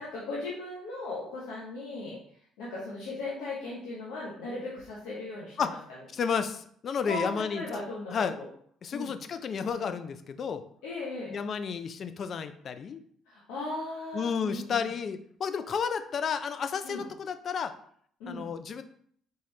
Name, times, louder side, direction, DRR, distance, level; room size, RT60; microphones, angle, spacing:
voice 1, 0.0-2.2 2.6-5.7 7.1-8.5 8.9-9.2 10.8-11.3 13.3-14.9 16.8-17.0 18.2-18.5, left 2 dB, 85° left, -5 dB, 1.1 m, -37 dB
voice 2, 6.1-7.6 8.1-8.3 8.8-10.6 11.3-13.0 14.1-17.7 18.3-18.8, left 6 dB, 55° left, 10 dB, 0.5 m, -32 dB
4.0 x 3.8 x 3.2 m, 0.62 s
supercardioid pair, 70°, 0 cm